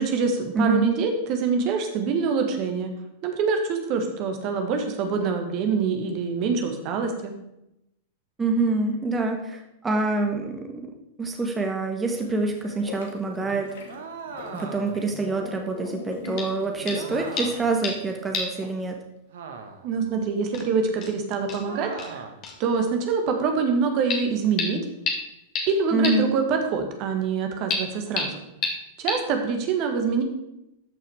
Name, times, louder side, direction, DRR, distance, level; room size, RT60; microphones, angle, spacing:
voice 1, 0.0-2.9 3.2-7.3 19.8-22.3 22.6-24.8 25.7-28.4 29.0-30.2, right 5 dB, 45° right, 5 dB, 1.7 m, -25 dB
voice 2, 0.5-0.9 8.4-10.9 11.2-13.7 14.5-18.9 25.9-26.3, right 3 dB, 15° right, 3 dB, 1.5 m, -26 dB
sound 1, 12.1-18.8, left 5 dB, 65° left, 1.7 m, -41 dB
sound 2, 13.9-15.1 16.9-17.8 19.3-20.0 21.6-22.4, right 5 dB, 65° right, 1.3 m, -39 dB
sound 3, 16.4-16.6 16.9-17.1 17.4-18.1 18.3-18.6 18.9-19.0 20.1-20.2 20.5-20.6 21.0-21.1 21.5-21.6 22.0-22.1 22.4-22.6 24.1-24.2 24.6-24.7 25.1-25.2 25.6-25.7 26.0-26.1 27.7-27.8 28.2-28.3 28.6-28.7 29.1-29.2, left 4 dB, 40° left, 2.1 m, -28 dB
13.0 x 5.8 x 4.8 m, 0.87 s
figure-of-eight pair, 95°, 0 cm